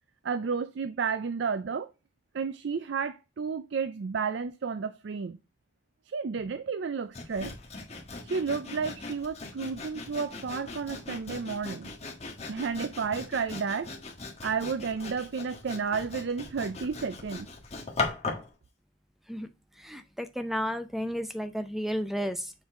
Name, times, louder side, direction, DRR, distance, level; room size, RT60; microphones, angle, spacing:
voice 1, 0.2-1.9 2.3-5.4 6.1-7.6 8.2-11.9 12.5-13.9 14.4-17.5, right 5 dB, 55° right, 0.4 m, -32 dB
Sawing, 7.1-18.5, left 3 dB, 30° left, 1.5 m, -39 dB
voice 2, 19.8-22.5, equal, ahead, 0.5 m, -32 dB
7.1 x 3.9 x 3.7 m
head